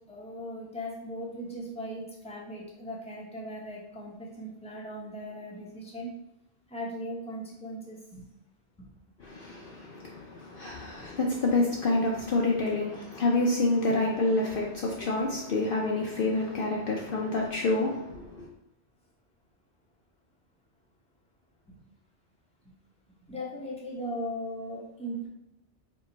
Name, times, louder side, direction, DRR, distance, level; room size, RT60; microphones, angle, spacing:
voice 1, 0.1-6.1 6.7-8.2 8.8-8.9 21.7-21.8 23.3-25.3, equal, 5° left, -5 dB, 0.8 m, -38 dB
voice 2, 9.2-18.5, left 2 dB, 60° left, -2 dB, 0.7 m, -28 dB
4.5 x 2.3 x 4.0 m, 0.88 s
omnidirectional pair, 1.2 m